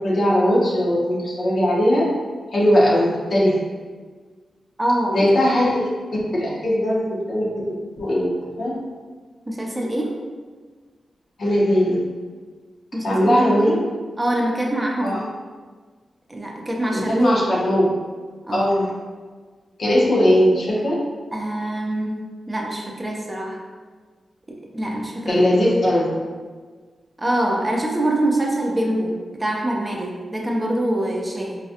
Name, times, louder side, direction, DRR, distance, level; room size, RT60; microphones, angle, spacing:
voice 1, 0.0-2.0 2.5-3.6 5.1-5.8 6.3-7.0 7.3-7.4 8.0-8.7 11.4-12.0 13.0-13.7 15.0-15.2 16.9-17.9 18.5-18.9 19.8-21.0 25.3-26.1, equal, 65° left, -5 dB, 1.0 m, -19 dB
voice 2, 4.8-5.3 9.5-10.1 12.9-13.8 14.2-15.3 16.3-17.3 18.5-18.7 21.3-22.2 22.5-23.6 24.5-25.4 27.2-31.6, right 1 dB, 20° right, -1 dB, 0.6 m, -24 dB
3.9 x 2.3 x 2.8 m, 1.4 s
cardioid pair, 65°, 0 cm